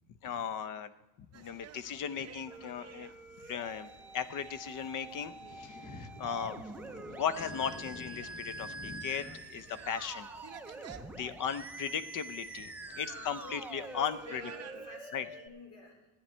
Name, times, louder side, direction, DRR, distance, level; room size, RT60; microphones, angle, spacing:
voice 1, 0.2-0.9 1.3-3.1 3.4-6.6 7.1-10.3 10.9-14.4 15.1-15.3, left 7 dB, 50° left, 14 dB, 0.7 m, -37 dB
sound 1, 1.3-15.0, right 9 dB, 40° right, 0.7 m, -55 dB
Musical instrument, 2.5-15.5, right 2 dB, 5° right, 0.5 m, -46 dB
sound 2, 5.5-13.7, left 2 dB, 35° left, 1.3 m, -51 dB
voice 2, 12.9-14.0 14.2-16.1, left 2 dB, 80° left, 1 dB, 3.8 m, -51 dB
15.0 x 9.5 x 4.4 m, 1.1 s
cardioid pair, 140°, 40 cm